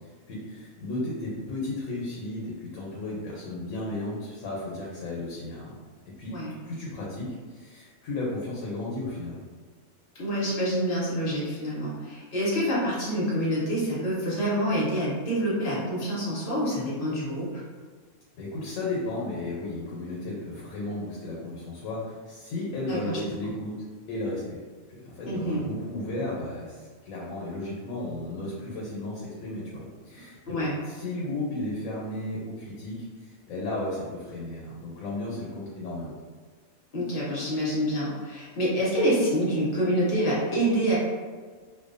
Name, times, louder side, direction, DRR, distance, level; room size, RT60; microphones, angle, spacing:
voice 1, 0.3-5.7 6.2-6.3 6.6-9.4 18.4-23.7 24.1-24.6 24.9-36.1, left 2 dB, 85° left, -4 dB, 1.0 m, -34 dB
voice 2, 10.2-17.5 22.9-23.2 25.3-25.7 30.5-30.7 36.9-41.0, equal, 50° left, -6 dB, 0.9 m, -27 dB
2.6 x 2.1 x 2.5 m, 1.5 s
omnidirectional pair, 1.4 m